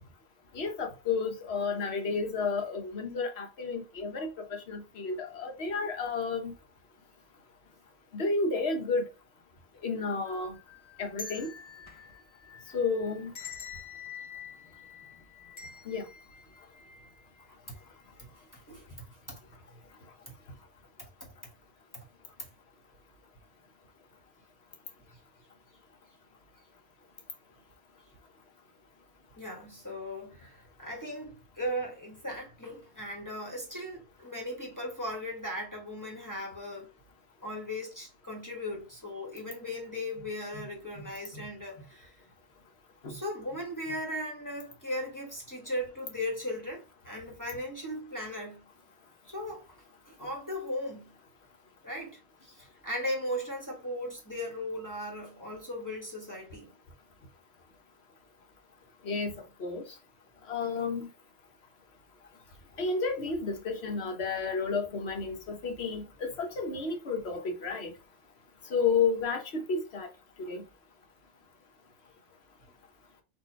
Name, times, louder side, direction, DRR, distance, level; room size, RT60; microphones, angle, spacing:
voice 1, 0.5-6.5 8.1-9.1 9.8-10.6 11.0-11.5 12.7-13.3 15.8-16.1 40.5-40.7 41.0-41.5 43.0-43.2 59.0-59.3 59.6-59.8 60.5-61.1 62.8-67.9 68.7-70.1 70.4-70.6, left 4 dB, 80° left, 1.3 m, -31 dB
sound 1, 10.3-17.4 17.8-17.9 18.8-19.1 19.5-19.6, left 5 dB, 35° left, 0.6 m, -47 dB
voice 2, 15.0-15.5 17.7-17.8 18.5-19.4 20.3-20.4 21.0-21.3 21.9-22.0 22.4-22.5 29.4-36.9 37.4-42.1 43.1-48.7 49.2-49.8 50.0-51.2 51.8-56.7, left 1 dB, 20° left, 1.4 m, -38 dB
4.4 x 2.7 x 4.5 m
omnidirectional pair, 1.1 m